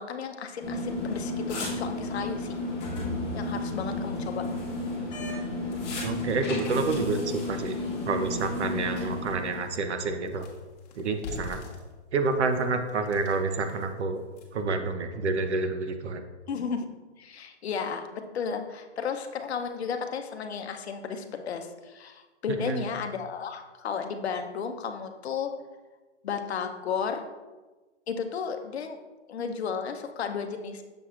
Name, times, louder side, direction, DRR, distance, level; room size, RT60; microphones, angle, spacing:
voice 1, 0.0-2.6 3.3-4.5 9.0-9.1 16.5-16.9 17.2-25.5 26.2-27.2 28.1-29.0 29.3-30.8, left 6 dB, 65° left, 6 dB, 0.7 m, -33 dB
sound 1, 0.6-9.7, left 2 dB, 15° left, 1.0 m, -32 dB
voice 2, 6.0-7.7 8.0-10.5 11.0-11.6 12.1-14.2 14.5-16.2 22.5-22.9, right 3 dB, 70° right, 7 dB, 0.8 m, -28 dB
sound 2, 8.8-14.7, left 2 dB, 35° left, 1.0 m, -46 dB
6.9 x 5.7 x 2.5 m, 1.2 s
hypercardioid pair, 160°, 35 cm